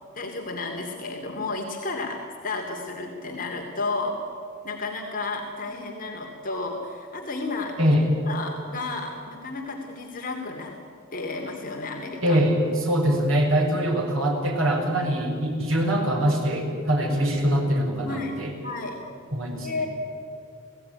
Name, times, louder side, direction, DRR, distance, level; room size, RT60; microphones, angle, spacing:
voice 1, 0.1-4.2 4.6-8.0 8.3-10.8 11.1-12.4 14.9-15.0 17.5-17.6 18.0-18.3 18.6-19.0 19.6-19.9, left 3 dB, 40° left, 1 dB, 2.8 m, -32 dB
voice 2, 12.2-18.5 19.3-19.8, equal, 85° right, 1 dB, 7.1 m, -23 dB
30.0 x 18.0 x 9.9 m, 2.6 s
head